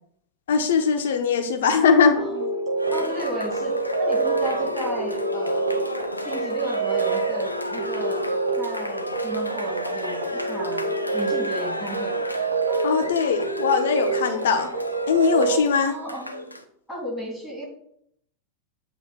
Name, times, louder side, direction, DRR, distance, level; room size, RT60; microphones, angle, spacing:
voice 1, 0.5-2.2 12.8-14.7 15.1-15.9, left 6 dB, 60° left, 6 dB, 0.9 m, -20 dB
sound 1, 2.2-15.6, right 4 dB, 75° right, 1.2 m, -28 dB
Cheering, 2.8-16.6, left 1 dB, 85° left, 0.5 m, -32 dB
voice 2, 2.9-5.7 6.2-8.3 8.6-12.1 15.8-16.5 16.9-17.6, right 1 dB, 5° right, -3 dB, 2.8 m, -33 dB
7.9 x 2.8 x 5.7 m, 0.70 s
figure-of-eight pair, 90°, 0 cm